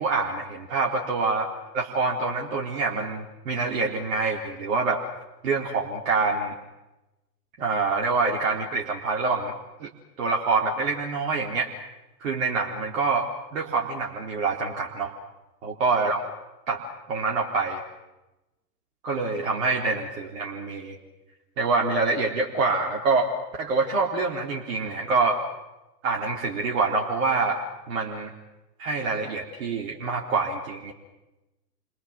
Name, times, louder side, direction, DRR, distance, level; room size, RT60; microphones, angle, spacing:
voice 1, 0.0-1.5 1.7-5.0 5.4-6.5 7.6-9.5 9.8-9.9 10.2-11.7 12.2-15.1 15.6-16.2 16.7-16.8 17.1-17.8 19.0-21.0 21.6-23.3 23.6-25.4 26.0-27.6 27.9-28.3 28.8-30.9, right 4 dB, 55° right, -1 dB, 4.1 m, -26 dB
29.5 x 25.5 x 7.7 m, 1.0 s
figure-of-eight pair, 100°, 49 cm